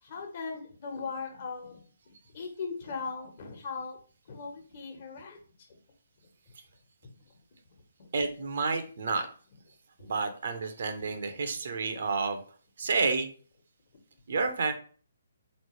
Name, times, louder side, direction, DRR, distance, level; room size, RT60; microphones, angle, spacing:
voice 1, 0.0-1.8 2.3-4.0 4.3-5.4 10.0-10.1, left 5 dB, 50° left, 2 dB, 1.2 m, -38 dB
voice 2, 8.1-9.3 10.0-12.4 12.8-13.3 14.3-14.7, right 4 dB, 60° right, 8 dB, 0.7 m, -30 dB
3.9 x 3.2 x 3.1 m, 0.41 s
figure-of-eight pair, 140°, 0 cm